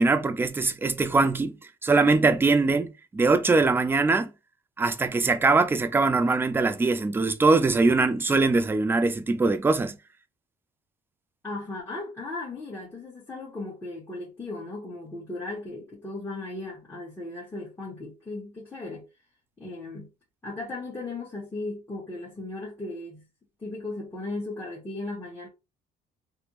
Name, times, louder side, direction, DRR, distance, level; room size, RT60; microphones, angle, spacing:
voice 1, 0.0-1.6 1.8-4.3 4.8-10.0, right 3 dB, 15° right, 0.4 m, -22 dB
voice 2, 11.4-19.0 19.6-20.1 20.4-23.3 23.6-25.5, left 2 dB, 15° left, 1.3 m, -36 dB
3.4 x 2.1 x 2.9 m
cardioid pair, 110°, 17 cm